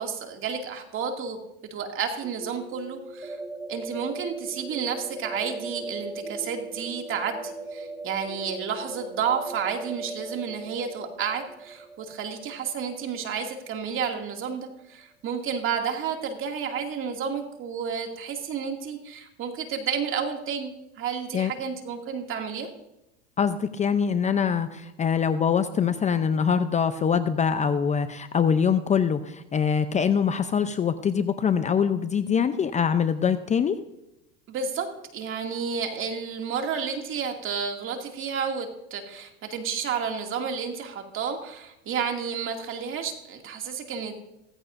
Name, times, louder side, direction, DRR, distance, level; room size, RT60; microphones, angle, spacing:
voice 1, 0.0-1.4 1.7-3.4 3.7-22.7 34.5-34.9 35.1-44.2, right 6 dB, 40° right, 3 dB, 2.5 m, -31 dB
sound 1, 2.2-13.9, right 2 dB, 10° right, 2.7 m, -39 dB
voice 2, 23.4-33.8, left 7 dB, 20° left, 11 dB, 0.6 m, -24 dB
16.0 x 15.0 x 2.6 m, 0.88 s
supercardioid pair, 105°, 32 cm